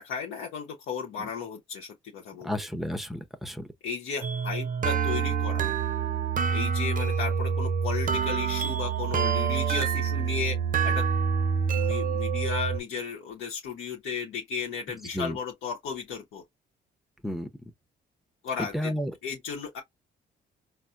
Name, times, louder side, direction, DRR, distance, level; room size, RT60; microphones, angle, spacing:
voice 1, 0.0-2.5 3.8-5.7 6.5-10.6 10.8-11.1 11.7-16.4 18.4-19.8, left 6 dB, 85° left, 0.9 m, -34 dB
voice 2, 2.4-3.7 15.1-15.4 17.2-17.5 18.7-19.1, equal, ahead, 0.7 m, -32 dB
sound 1, 4.2-12.8, right 6 dB, 40° right, 0.5 m, -27 dB
4.2 x 2.1 x 2.4 m
cardioid pair, 90°, 20 cm